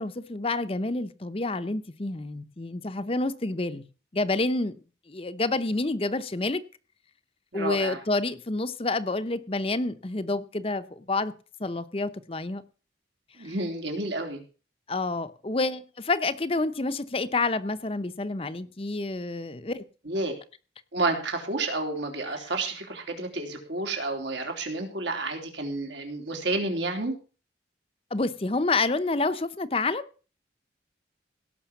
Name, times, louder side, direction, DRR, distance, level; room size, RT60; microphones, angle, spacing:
voice 1, 0.0-3.8 4.1-4.7 5.1-6.6 7.5-11.3 11.6-12.6 13.4-13.5 14.9-19.8 28.1-30.0, left 2 dB, 30° left, 0.7 m, -28 dB
voice 2, 7.5-8.0 13.4-14.4 20.1-20.3 20.9-27.2, right 2 dB, 80° right, 3.6 m, -30 dB
17.5 x 6.2 x 7.1 m
head